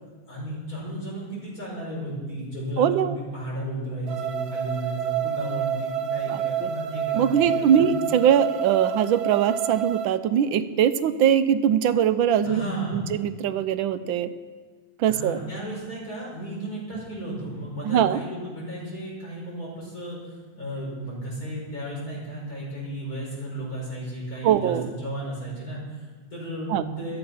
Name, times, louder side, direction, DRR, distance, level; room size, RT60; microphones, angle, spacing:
voice 1, 0.3-8.0 12.4-13.2 15.0-27.2, right 1 dB, 45° left, -5 dB, 6.5 m, -34 dB
voice 2, 2.8-3.2 6.3-6.7 7.1-12.6 12.9-14.3 15.0-15.4 17.8-18.2 24.4-24.9 26.7-26.8, right 9 dB, 85° right, 12 dB, 1.5 m, -22 dB
sound 1, 4.1-10.1, right 9 dB, 60° right, 1.4 m, -29 dB
14.5 x 13.0 x 5.7 m, 1.4 s
omnidirectional pair, 2.1 m